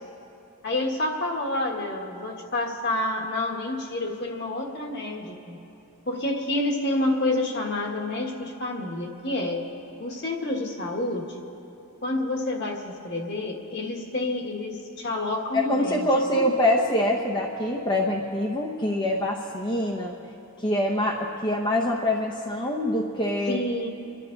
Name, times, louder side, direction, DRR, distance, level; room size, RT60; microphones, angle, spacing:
voice 1, 0.6-5.6 6.1-9.6 10.0-11.4 12.0-16.1 16.3-16.5 23.5-23.9, left 2 dB, 50° left, 1 dB, 1.6 m, -28 dB
voice 2, 15.5-20.1 20.6-23.6, left 1 dB, 20° left, -1 dB, 0.8 m, -25 dB
25.5 x 11.5 x 3.9 m, 3.0 s
head